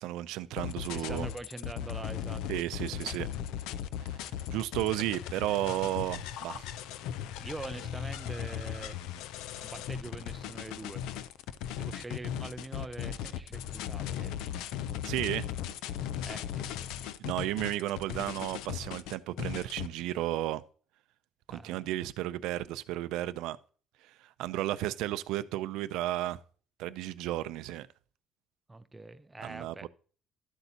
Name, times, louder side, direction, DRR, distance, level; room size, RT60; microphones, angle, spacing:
voice 1, 0.0-1.3 2.5-3.3 4.0-4.2 4.5-6.7 15.0-15.4 17.2-20.6 21.5-23.6 24.2-26.4 26.8-27.9 29.4-29.9, right 14 dB, 80° right, 0.5 m, -33 dB
sound 1, 0.6-19.9, left 10 dB, 85° left, 0.5 m, -37 dB
voice 2, 0.9-2.4 2.9-3.2 4.3-4.6 7.3-9.0 9.6-11.0 11.7-14.3 16.2-16.9 21.5-21.9 28.7-29.9, right 2 dB, 10° right, 0.4 m, -44 dB
12.5 x 8.1 x 2.8 m
cardioid pair, 165°, 0 cm